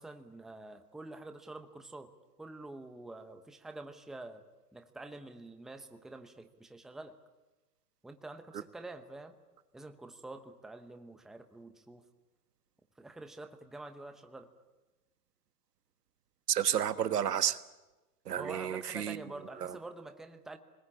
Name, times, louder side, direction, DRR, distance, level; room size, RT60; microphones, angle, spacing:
voice 1, 0.0-2.1 2.4-4.4 4.7-7.2 8.0-9.3 9.7-12.0 13.0-14.5 18.3-20.6, right 2 dB, ahead, 7 dB, 0.8 m, -47 dB
voice 2, 16.5-17.6 18.2-19.2 19.6-19.8, right 9 dB, 90° right, 12 dB, 1.5 m, -31 dB
28.5 x 20.5 x 8.7 m, 1.1 s
hypercardioid pair, 140°, 46 cm